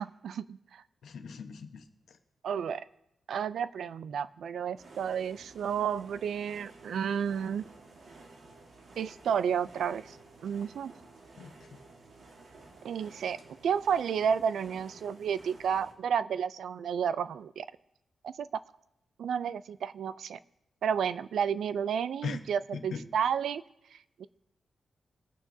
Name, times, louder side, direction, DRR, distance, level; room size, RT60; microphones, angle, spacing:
voice 1, 0.0-0.8 2.4-2.8 3.3-7.6 9.0-10.2 10.4-10.9 12.8-13.4 13.6-17.7 18.2-18.5 19.2-20.4 20.8-23.6 24.2-24.3, right 7 dB, 85° right, 16 dB, 0.4 m, -31 dB
voice 2, 1.0-2.2 11.4-11.8 22.2-22.4 22.7-23.0, left 5 dB, 80° left, 6 dB, 1.0 m, -40 dB
sound 1, 4.8-15.9, right 3 dB, 65° right, 1.6 m, -53 dB
21.5 x 8.9 x 2.7 m, 0.85 s
wide cardioid pair, 150°, 0 cm